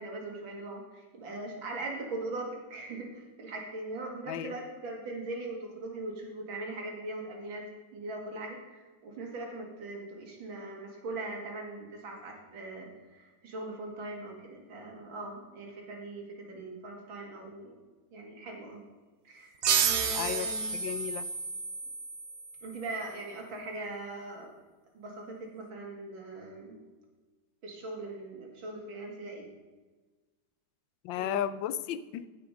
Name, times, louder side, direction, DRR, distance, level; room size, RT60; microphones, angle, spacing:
voice 1, 0.0-7.6 7.9-12.9 13.1-17.8 18.1-18.8 19.2-19.5 19.8-20.8 22.6-24.5 24.9-26.7 27.6-29.5 31.2-31.4, right 2 dB, 85° right, 1 dB, 2.8 m, -40 dB
sound 1, 19.6-22.9, right 6 dB, 65° right, 0.6 m, -31 dB
voice 2, 20.1-21.2 31.0-32.3, left 10 dB, 80° left, 15 dB, 1.3 m, -34 dB
15.5 x 6.0 x 5.1 m, 1.3 s
omnidirectional pair, 2.1 m